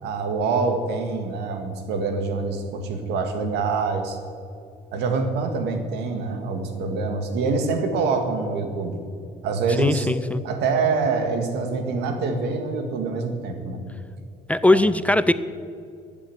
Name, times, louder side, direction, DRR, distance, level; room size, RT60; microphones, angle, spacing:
voice 1, 0.0-4.2 4.9-9.0 9.4-10.1 10.4-13.8, right 4 dB, 85° right, 6 dB, 2.1 m, -25 dB
voice 2, 9.8-10.4 14.5-15.3, left 1 dB, 10° left, 13 dB, 0.5 m, -19 dB
14.5 x 8.4 x 10.0 m, 2.4 s
cardioid pair, 110°, 17 cm